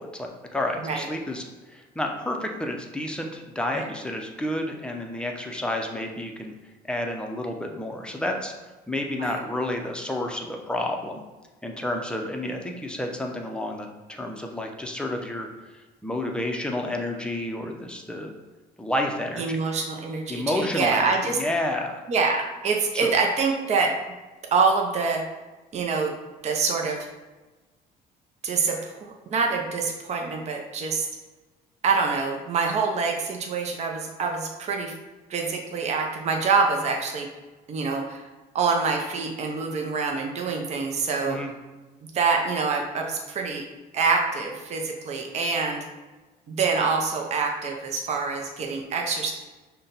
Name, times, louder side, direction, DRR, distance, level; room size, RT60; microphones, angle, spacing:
voice 1, 0.0-1.4 1.7-6.5 6.8-11.2 11.6-18.3 18.8-19.6 20.3-22.0 22.9-23.1 41.3-41.5, left 1 dB, 5° left, 2 dB, 0.6 m, -30 dB
voice 2, 19.4-21.4 22.1-23.9 24.5-25.2 25.7-26.1 26.4-27.1 28.4-29.0 29.3-31.1 31.8-34.9 35.3-37.3 37.7-38.2 38.5-41.4 42.1-43.6 43.9-45.8 46.5-49.3, right 4 dB, 40° right, 1 dB, 0.6 m, -25 dB
5.6 x 2.2 x 3.9 m, 1.2 s
cardioid pair, 110°, 17 cm